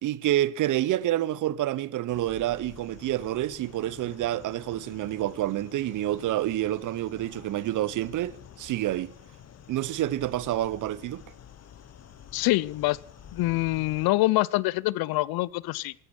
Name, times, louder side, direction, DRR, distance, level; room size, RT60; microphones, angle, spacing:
voice 1, 0.0-9.1 9.7-11.2, right 14 dB, 40° right, 0.6 m, -28 dB
sound 1, 2.1-14.1, left 9 dB, 30° left, 1.1 m, -49 dB
voice 2, 12.3-13.0 13.3-15.9, left 19 dB, 50° left, 0.6 m, -25 dB
13.5 x 9.4 x 6.0 m
supercardioid pair, 85°, 49 cm